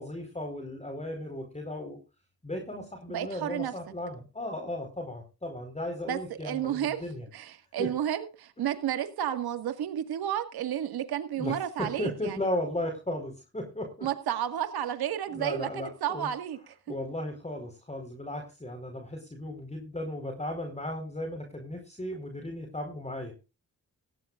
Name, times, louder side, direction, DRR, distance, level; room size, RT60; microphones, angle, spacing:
voice 1, 0.0-2.0 2.4-7.3 7.8-7.9 11.4-14.1 15.3-16.3 16.9-23.4, left 1 dB, 20° left, 4 dB, 4.6 m, -36 dB
voice 2, 3.1-3.7 6.1-7.0 7.3-12.4 14.0-16.7, right 10 dB, 85° right, 8 dB, 1.9 m, -32 dB
17.5 x 15.5 x 2.5 m, 0.31 s
supercardioid pair, 55°, 36 cm